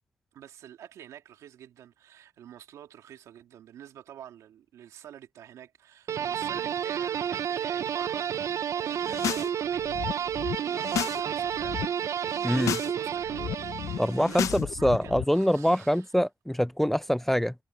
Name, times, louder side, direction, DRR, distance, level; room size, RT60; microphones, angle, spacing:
voice 1, 0.3-11.8 12.4-16.1, right 10 dB, 85° right, 2.9 m, -48 dB
sound 1, 6.1-14.4, right 8 dB, 70° right, 0.6 m, -31 dB
sound 2, 8.9-9.5 9.8-11.2 11.5-11.9 12.3-12.9 13.2-15.2, left 10 dB, 80° left, 0.7 m, -33 dB
voice 2, 12.4-12.8 14.0-17.5, equal, 5° left, 0.5 m, -25 dB
supercardioid pair, 50°, 5 cm